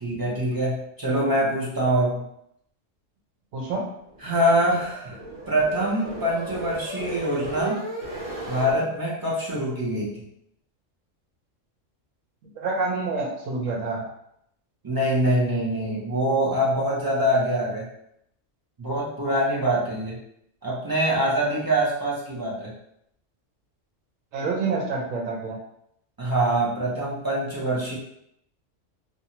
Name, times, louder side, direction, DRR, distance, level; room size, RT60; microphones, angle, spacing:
voice 1, 0.0-2.2 4.2-5.2 5.5-7.8 8.5-10.1 14.8-17.8 18.8-20.2 20.6-22.7 26.2-28.0, right 1 dB, 25° right, -6 dB, 0.4 m, -24 dB
voice 2, 3.5-3.9 12.6-14.0 24.3-25.6, right 3 dB, 90° right, 0 dB, 1.1 m, -27 dB
sound 1, 4.1-8.8, right 2 dB, 70° right, 1.1 m, -35 dB
2.6 x 2.3 x 2.8 m, 0.75 s
omnidirectional pair, 1.3 m